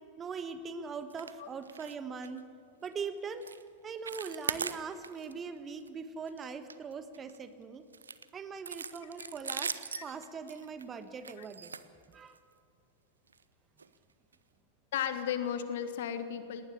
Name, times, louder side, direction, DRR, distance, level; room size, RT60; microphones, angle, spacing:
voice 1, 0.2-2.4 2.8-3.5 3.8-7.8 8.3-11.7 12.1-12.3, right 5 dB, 20° right, 10 dB, 1.3 m, -41 dB
sound 1, 1.1-1.4 1.6-2.0 2.2-2.4 2.8-3.0 3.4-3.6 3.9-5.3 5.7-5.9 6.3-7.4 7.9-12.5 13.3-13.4 13.8-13.9 14.3-14.4, right 5 dB, 75° right, 0.7 m, -40 dB
voice 2, 14.9-16.6, left 9 dB, 55° left, 10 dB, 1.5 m, -35 dB
19.0 x 18.5 x 8.3 m, 2.3 s
figure-of-eight pair, 90°, 0 cm